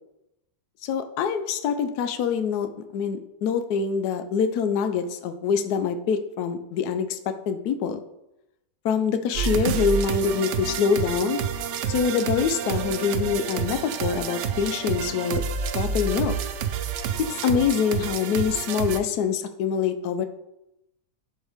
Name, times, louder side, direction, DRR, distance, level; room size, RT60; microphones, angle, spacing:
voice 1, 0.8-7.2 7.5-8.0 8.8-11.4 11.9-15.4 15.7-16.3 17.3-20.3, left 6 dB, 70° left, 9 dB, 1.1 m, -25 dB
sound 1, 9.3-19.0, right 7 dB, 80° right, 0.6 m, -28 dB
11.0 x 4.5 x 3.5 m, 0.87 s
omnidirectional pair, 1.9 m